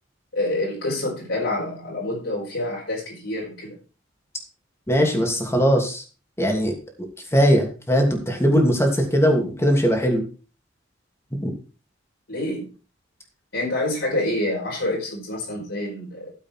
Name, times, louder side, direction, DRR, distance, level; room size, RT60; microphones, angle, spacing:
voice 1, 0.3-3.7 12.3-12.6 13.5-16.3, left 1 dB, 70° left, -5 dB, 4.9 m, -27 dB
voice 2, 4.9-6.0 6.4-6.7 7.3-10.2 11.4-11.5, equal, 15° left, 2 dB, 2.8 m, -20 dB
13.5 x 7.6 x 4.6 m, 0.36 s
head